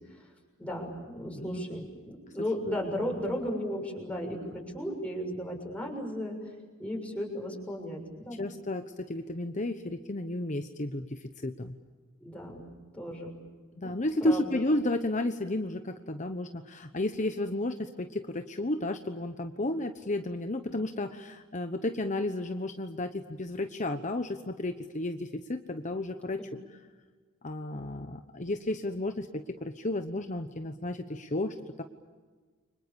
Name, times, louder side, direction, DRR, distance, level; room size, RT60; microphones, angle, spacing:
voice 1, 0.6-6.4 6.8-8.4 12.2-12.7 12.9-13.4 13.8-13.9 14.2-14.5 26.4-26.5, equal, 5° left, 0 dB, 6.7 m, -35 dB
voice 2, 1.2-1.8 8.4-11.8 13.8-26.4 27.4-31.8, left 1 dB, 35° left, 7 dB, 1.1 m, -32 dB
30.0 x 25.0 x 7.0 m, 1.4 s
head